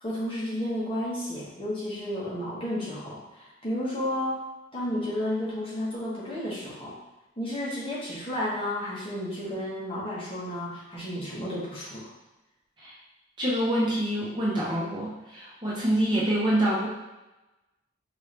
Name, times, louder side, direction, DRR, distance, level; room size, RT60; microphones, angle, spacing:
voice 1, 0.0-4.4 4.7-7.0 7.4-12.1, left 1 dB, 30° left, -7 dB, 1.2 m, -32 dB
voice 2, 13.4-16.9, right 1 dB, 25° right, -7 dB, 1.0 m, -26 dB
4.5 x 2.7 x 3.3 m, 1.0 s
head